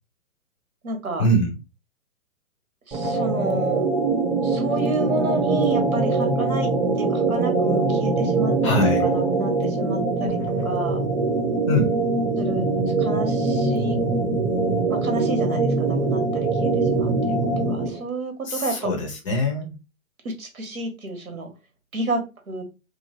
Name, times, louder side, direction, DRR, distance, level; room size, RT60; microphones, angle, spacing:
voice 1, 0.8-1.3 2.9-3.9 4.4-6.7 7.0-10.4 10.6-11.0 12.4-12.7 13.0-14.0 14.9-18.9 20.2-21.5 21.9-22.6, right 2 dB, 80° right, 1.2 m, -30 dB
sound 1, 2.9-18.0, right 3 dB, 20° right, 0.9 m, -23 dB
voice 2, 8.6-9.1 11.7-12.0 18.4-19.8, left 1 dB, 25° left, 0.5 m, -23 dB
2.7 x 2.3 x 2.9 m
figure-of-eight pair, 130°, 42 cm